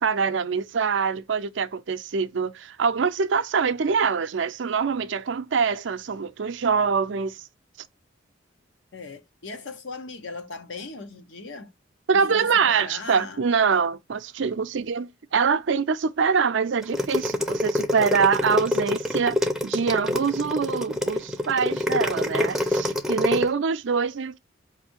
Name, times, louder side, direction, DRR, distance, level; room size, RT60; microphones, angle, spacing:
voice 1, 0.0-7.4 12.1-24.4, right 5 dB, 70° right, 0.5 m, -24 dB
voice 2, 8.9-11.7 12.1-13.4, left 3 dB, 75° left, 0.9 m, -38 dB
sound 1, 16.8-23.5, left 1 dB, ahead, 0.5 m, -25 dB
5.0 x 2.7 x 2.8 m
head